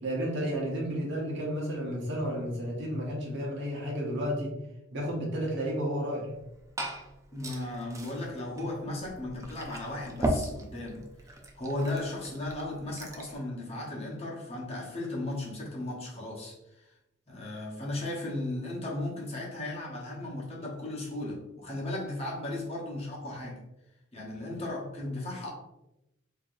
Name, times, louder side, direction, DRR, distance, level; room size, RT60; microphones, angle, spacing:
voice 1, 0.0-4.5 4.9-6.3, equal, 60° right, -2 dB, 1.1 m, -32 dB
Glass / Fill (with liquid), 6.3-13.3, right 1 dB, 15° right, 0.4 m, -38 dB
voice 2, 7.3-16.9 17.3-23.6 24.1-25.5, left 1 dB, 30° left, -4 dB, 1.0 m, -36 dB
4.6 x 2.8 x 2.5 m, 0.91 s
head